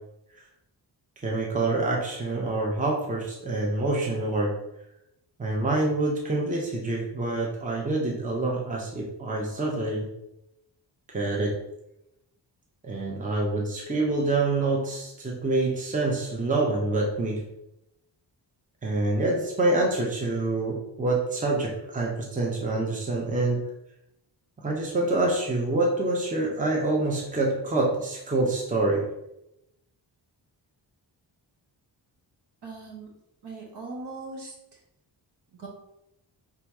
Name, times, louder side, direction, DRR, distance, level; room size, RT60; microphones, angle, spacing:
voice 1, 1.2-4.5 5.4-10.1 11.1-11.6 12.8-17.4 18.8-23.6 24.6-29.0, right 2 dB, 20° right, -2 dB, 0.7 m, -26 dB
voice 2, 32.6-33.1 33.4-34.5 35.6-35.7, right 3 dB, 70° right, -1 dB, 1.3 m, -39 dB
3.6 x 2.8 x 4.6 m, 0.84 s
wide cardioid pair, 145°, 42 cm